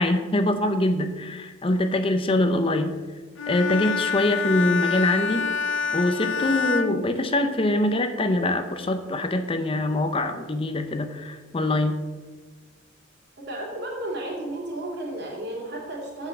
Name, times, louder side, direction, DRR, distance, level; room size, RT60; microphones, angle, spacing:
voice 1, 0.0-3.0 3.5-5.5 5.9-12.0, left 1 dB, 30° left, 8 dB, 0.6 m, -24 dB
Bowed string instrument, 3.4-7.9, left 5 dB, 90° left, 0.6 m, -27 dB
voice 2, 13.5-16.3, right 1 dB, 60° right, -2 dB, 2.9 m, -33 dB
8.0 x 5.5 x 7.1 m, 1.3 s
head